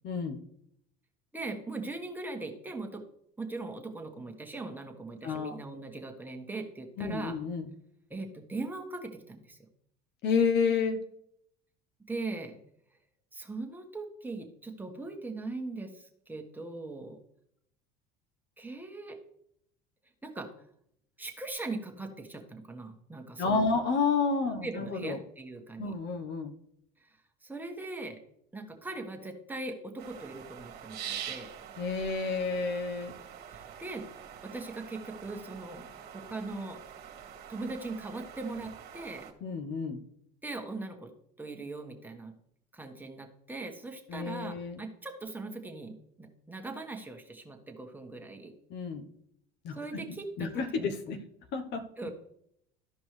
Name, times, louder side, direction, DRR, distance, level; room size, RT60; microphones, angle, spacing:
voice 1, 0.0-0.4 5.2-5.6 7.0-7.7 10.2-11.0 23.4-25.2 25.8-26.5 31.8-33.1 39.4-40.0 44.1-44.8 48.7-49.1 49.6-50.0 50.4-51.2 51.5-52.1, left 5 dB, 55° left, 7 dB, 1.1 m, -30 dB
voice 2, 1.3-3.0 3.4-7.4 8.1-9.6 12.1-12.6 13.3-17.2 18.6-19.2 20.2-20.5 21.2-23.7 24.6-25.9 27.4-28.2 28.5-31.5 33.5-34.1 34.4-35.9 36.1-36.8 37.5-39.3 40.4-41.1 41.4-42.3 42.7-48.5 49.7-50.5 50.8-50.9 52.0-52.1, right 3 dB, 10° right, 2 dB, 1.5 m, -40 dB
sound 1, 30.0-39.3, right 9 dB, 50° right, 1.7 m, -45 dB
14.0 x 5.2 x 3.3 m, 0.72 s
supercardioid pair, 90°, 21 cm